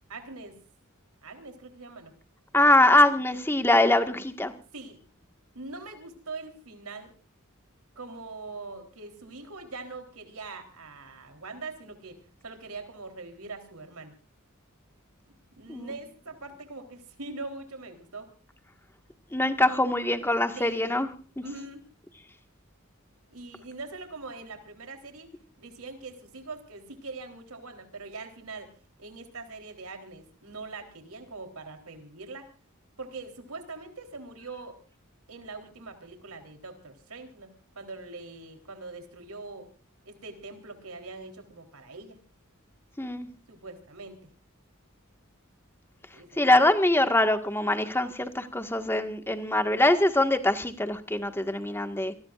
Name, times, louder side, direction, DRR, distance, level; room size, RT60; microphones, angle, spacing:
voice 1, 0.1-0.6 1.2-2.1 4.7-5.0 5.6-7.1 8.0-14.1 15.6-18.3 20.6-20.9 21.4-21.8 23.3-25.3 25.6-28.7 29.0-32.5 33.0-34.8 35.3-37.5 37.8-39.7 40.1-42.2 43.5-44.2 46.1-46.3, right 3 dB, 85° right, 5 dB, 3.8 m, -42 dB
voice 2, 2.5-4.5 15.7-15.9 19.3-21.4 43.0-43.3 46.4-52.1, left 1 dB, 10° left, 7 dB, 1.7 m, -23 dB
27.0 x 19.5 x 2.5 m, 0.38 s
head